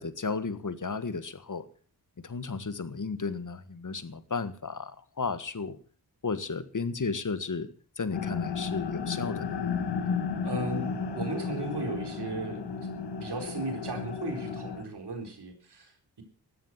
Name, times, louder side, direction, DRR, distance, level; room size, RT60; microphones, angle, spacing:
voice 1, 0.0-1.6 2.2-5.8 6.2-7.7 8.0-9.6, left 4 dB, 50° left, 12 dB, 1.6 m, -33 dB
sound 1, 8.1-14.8, left 6 dB, 80° left, 2.0 m, -33 dB
voice 2, 10.4-10.9 11.1-12.6 13.2-16.2, right 3 dB, 75° right, 4 dB, 4.2 m, -36 dB
14.0 x 11.0 x 7.5 m, 0.43 s
cardioid pair, 50°, 40 cm